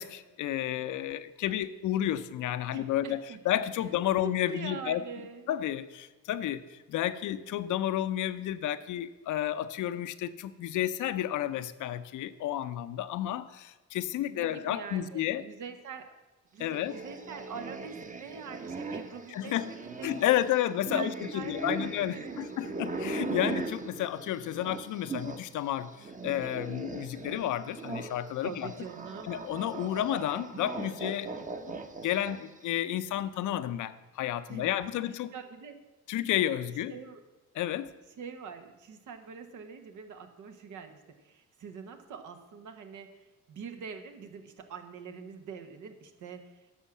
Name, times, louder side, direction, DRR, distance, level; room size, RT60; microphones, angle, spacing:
voice 1, 0.0-3.2 3.4-5.0 5.5-15.4 16.6-17.0 19.3-19.7 20.0-28.7 29.2-31.7 32.0-35.3 36.1-36.9 37.5-37.9, left 12 dB, 80° left, 12 dB, 0.7 m, -31 dB
voice 2, 2.7-3.4 4.2-5.5 14.3-16.2 16.5-20.4 20.9-22.5 28.4-29.3 34.5-34.7 35.3-35.8 36.9-37.2 38.2-46.4, right 6 dB, 80° right, 7 dB, 1.2 m, -44 dB
sound 1, 16.7-25.5 25.8-32.6, right 3 dB, 25° right, 0.9 m, -39 dB
9.9 x 6.3 x 7.2 m, 1.1 s
cardioid pair, 90°, 30 cm